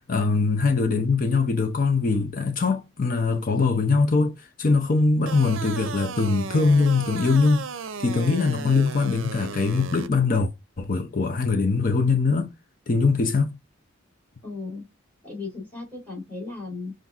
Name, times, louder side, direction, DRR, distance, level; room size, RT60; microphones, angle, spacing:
voice 1, 0.1-7.6 8.0-10.5 10.8-12.5 12.9-13.5, left 4 dB, 45° left, 0.7 m, -22 dB
sound 1, 5.3-10.1, right 5 dB, 70° right, 0.5 m, -35 dB
voice 2, 8.4-8.8 14.4-14.8 15.2-16.9, left 3 dB, 10° left, 3.2 m, -36 dB
5.7 x 2.6 x 3.5 m
head